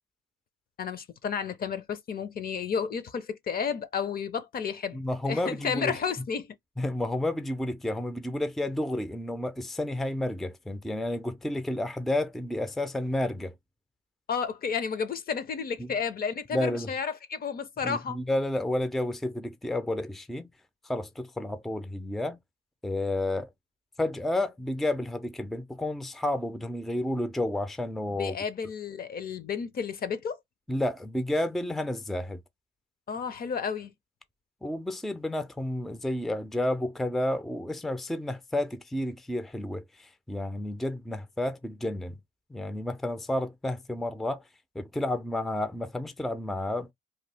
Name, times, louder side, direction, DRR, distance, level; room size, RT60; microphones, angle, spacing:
voice 1, 0.8-6.5 14.3-18.2 28.1-30.4 33.1-33.9, left 6 dB, 50° left, 0.6 m, -32 dB
voice 2, 4.9-6.0 6.8-13.5 15.8-15.9 16.5-16.9 17.8-20.5 20.8-22.4 22.8-23.5 24.0-28.4 30.7-32.4 34.6-42.2 42.5-44.4 44.7-46.9, left 1 dB, ahead, 0.4 m, -31 dB
2.8 x 2.3 x 3.3 m
cardioid pair, 90°, 20 cm